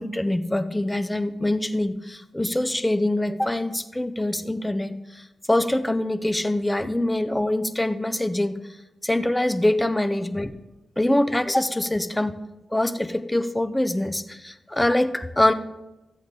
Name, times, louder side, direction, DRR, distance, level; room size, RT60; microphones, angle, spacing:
voice 1, 0.0-8.6 9.0-10.5 11.0-12.3 12.7-15.5, left 1 dB, 10° left, 10 dB, 0.6 m, -24 dB
12.5 x 8.1 x 3.7 m, 1.0 s
wide cardioid pair, 105°, 0 cm